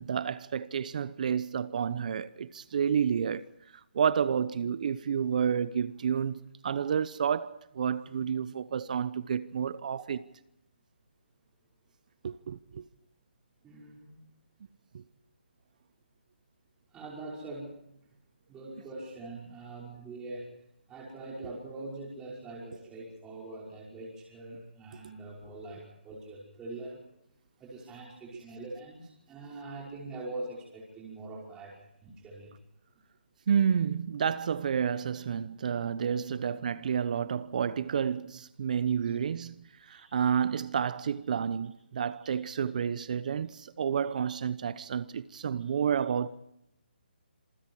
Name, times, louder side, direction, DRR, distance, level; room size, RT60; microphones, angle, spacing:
voice 1, 0.0-3.5 3.9-10.2 12.2-12.9 14.9-15.0 28.3-28.4 33.5-39.6 39.9-46.3, right 7 dB, 45° right, 0.9 m, -30 dB
voice 2, 13.6-14.2 16.9-17.8 18.5-20.5 20.9-27.0 27.6-31.7 32.0-32.5 39.0-39.1 39.9-40.1 42.2-42.4 44.0-44.1 45.6-45.7, right 2 dB, 10° right, 5.5 m, -43 dB
27.0 x 24.0 x 4.7 m
hypercardioid pair, 160°, 6 cm